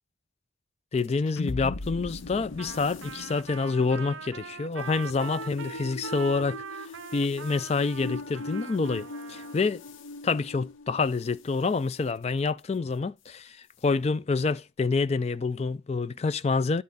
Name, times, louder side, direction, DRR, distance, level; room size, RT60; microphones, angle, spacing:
voice 1, 0.9-9.8 10.2-16.8, left 4 dB, 30° left, 0.3 m, -27 dB
sound 1, 1.0-11.5, left 3 dB, 70° left, 0.7 m, -40 dB
Trumpet, 2.6-9.7, right 7 dB, 70° right, 0.5 m, -42 dB
10.5 x 4.3 x 3.8 m
head